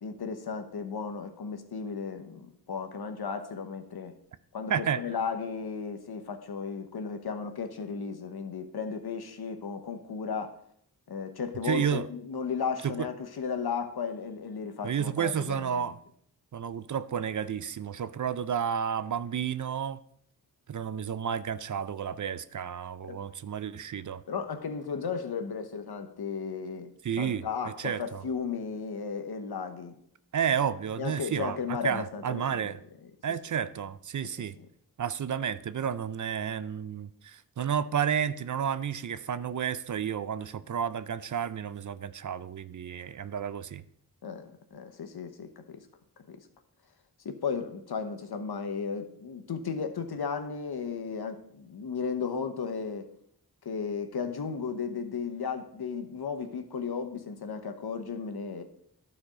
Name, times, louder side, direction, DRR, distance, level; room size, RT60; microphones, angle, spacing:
voice 1, 0.0-4.2 4.5-10.6 11.1-15.9 23.1-23.2 24.3-30.0 31.0-32.7 44.2-45.8 46.3-46.5 47.2-53.1 53.6-58.6, left 5 dB, 80° left, 1.0 m, -35 dB
voice 2, 4.7-5.0 11.6-12.1 12.8-13.1 14.8-16.0 16.5-20.0 20.7-24.2 27.0-28.2 30.3-32.8 33.2-34.5 35.0-43.8, right 8 dB, 50° right, 0.5 m, -31 dB
11.5 x 4.3 x 5.0 m
cardioid pair, 60°, 38 cm